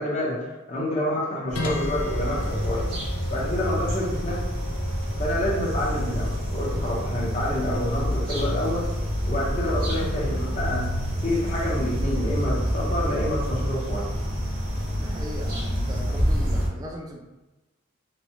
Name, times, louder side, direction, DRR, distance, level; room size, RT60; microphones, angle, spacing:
voice 1, 0.0-2.9 3.3-4.4 5.2-8.9 9.3-10.9 11.2-14.1, left 1 dB, 30° left, -5 dB, 0.8 m, -28 dB
sound 1, 1.5-16.7, equal, 45° right, 0.7 m, -27 dB
sound 2, 1.6-12.1, left 2 dB, 85° left, 0.5 m, -40 dB
voice 2, 15.0-17.2, equal, 15° right, 0 dB, 0.3 m, -38 dB
3.0 x 2.2 x 2.8 m, 1.1 s
head